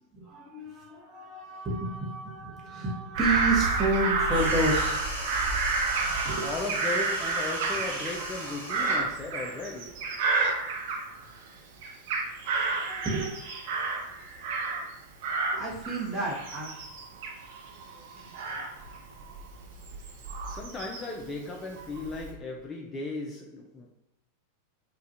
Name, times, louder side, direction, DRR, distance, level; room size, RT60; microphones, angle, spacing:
voice 1, 0.1-5.6 6.0-6.5 12.8-13.3 15.5-16.7 17.8-18.7, right 2 dB, 20° right, -3 dB, 0.8 m, -31 dB
Bird vocalization bird call bird song / Crow, 3.1-11.5 11.8-14.9 15.2-21.2 21.8-22.3, right 4 dB, 50° right, 0.5 m, -30 dB
sound 1, 4.2-9.1, right 1 dB, 85° right, 1.0 m, -38 dB
voice 2, 6.4-10.2 20.5-23.9, left 3 dB, 20° left, 0 dB, 0.3 m, -36 dB
2.3 x 2.1 x 2.6 m, 0.84 s
figure-of-eight pair, 90°, 0 cm